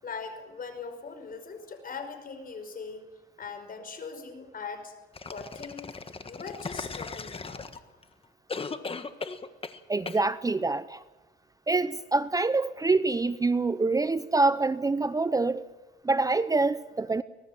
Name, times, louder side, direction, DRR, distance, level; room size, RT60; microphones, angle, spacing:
voice 1, 0.0-3.0 3.4-4.9 5.3-5.9 6.2-7.7, left 5 dB, 45° left, 8 dB, 5.3 m, -40 dB
sound 1, 5.1-8.0 8.5-9.8 10.1-10.2, left 4 dB, 30° left, 1.5 m, -37 dB
voice 2, 9.9-11.0 11.7-15.6 16.0-17.2, right 3 dB, 20° right, 14 dB, 0.7 m, -26 dB
25.0 x 19.0 x 7.4 m, 1.2 s
cardioid pair, 90°, 20 cm